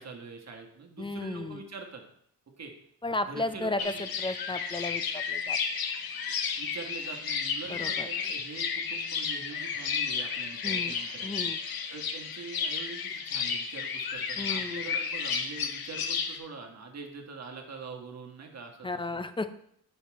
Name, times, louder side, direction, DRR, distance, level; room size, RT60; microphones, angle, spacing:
voice 1, 0.0-2.0 2.6-2.7 3.1-4.1 6.6-11.5 11.9-19.2, right 4 dB, 45° right, 2 dB, 1.5 m, -44 dB
voice 2, 1.0-1.6 3.0-3.9 4.2-5.0 5.3-5.6 7.7-8.1 10.6-10.9 11.2-11.6 14.4-14.9 18.8-19.6, left 2 dB, 15° left, 11 dB, 0.4 m, -33 dB
sound 1, 3.8-16.4, left 6 dB, 65° left, 1.0 m, -32 dB
8.2 x 5.7 x 4.7 m, 0.69 s
cardioid pair, 115°, 38 cm